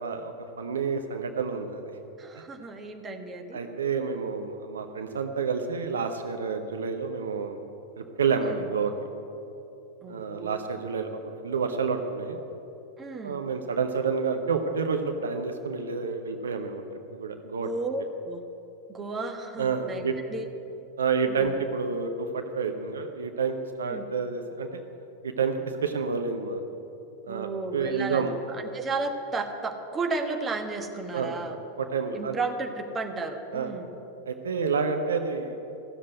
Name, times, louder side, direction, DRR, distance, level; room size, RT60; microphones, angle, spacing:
voice 1, 0.0-1.9 3.5-7.6 8.0-8.9 10.1-12.4 13.2-16.8 17.1-17.7 19.6-20.2 21.0-24.7 25.2-26.6 27.3-28.3 31.1-31.4 31.8-32.4 33.5-33.7 34.3-35.6, right 5 dB, 70° right, 6 dB, 0.9 m, -29 dB
voice 2, 2.2-3.6 8.4-8.6 10.0-10.6 13.0-13.4 17.6-18.4 18.9-20.0 20.3-20.5 21.3-21.5 23.8-24.1 27.3-31.6 32.1-34.0, right 3 dB, 20° right, 5 dB, 1.3 m, -33 dB
15.0 x 7.4 x 9.3 m, 2.9 s
figure-of-eight pair, 90°, 0 cm